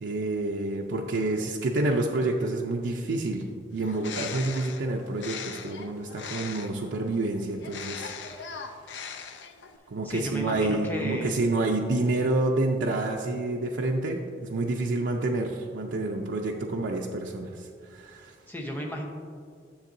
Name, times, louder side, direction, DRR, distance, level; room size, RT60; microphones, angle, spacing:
voice 1, 0.0-3.5 3.7-8.1 9.9-18.3, right 2 dB, 90° right, 0 dB, 0.5 m, -28 dB
Bird, 3.7-6.9 7.6-9.8, left 6 dB, 80° left, 0.5 m, -39 dB
voice 2, 10.0-11.4 18.5-19.0, equal, 10° left, -1 dB, 0.8 m, -33 dB
10.5 x 7.2 x 2.6 m, 2.2 s
head